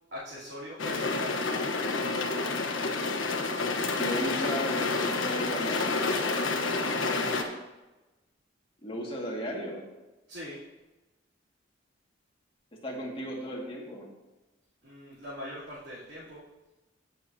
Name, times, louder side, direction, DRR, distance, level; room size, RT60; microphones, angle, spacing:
voice 1, 0.1-1.5 6.8-7.4 10.3-10.6 14.8-16.4, left 1 dB, 60° right, -11 dB, 3.1 m, -42 dB
sound 1, 0.8-7.4, left 3 dB, 75° left, 1.1 m, -29 dB
voice 2, 4.0-6.1 8.8-9.8 12.8-14.1, equal, 30° left, -3 dB, 2.0 m, -35 dB
16.0 x 6.6 x 2.8 m, 1.1 s
head